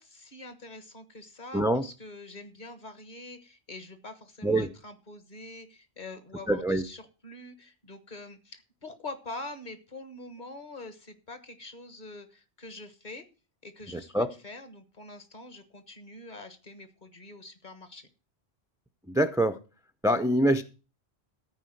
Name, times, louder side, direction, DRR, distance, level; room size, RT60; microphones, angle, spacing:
voice 1, 0.0-13.2 13.6-18.1, left 2 dB, 45° left, 10 dB, 1.5 m, -45 dB
voice 2, 1.5-1.8 4.4-4.7 6.5-6.8 13.9-14.3 19.1-19.6 20.0-20.6, right 1 dB, 5° right, 8 dB, 0.4 m, -25 dB
13.5 x 4.7 x 7.8 m, 0.33 s
omnidirectional pair, 1.1 m